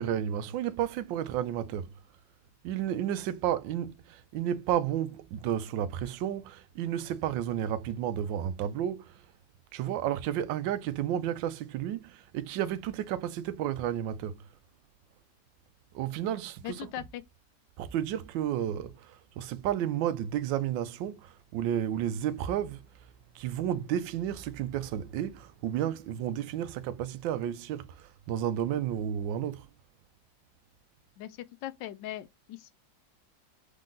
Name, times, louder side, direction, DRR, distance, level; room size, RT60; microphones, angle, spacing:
voice 1, 0.0-1.9 2.6-9.2 9.7-14.4 15.9-16.9 17.8-22.9 23.3-29.7, right 10 dB, 85° right, 1.3 m, -32 dB
voice 2, 16.6-17.2 31.2-32.7, left 13 dB, 80° left, 1.3 m, -40 dB
3.8 x 3.7 x 3.7 m
omnidirectional pair, 2.0 m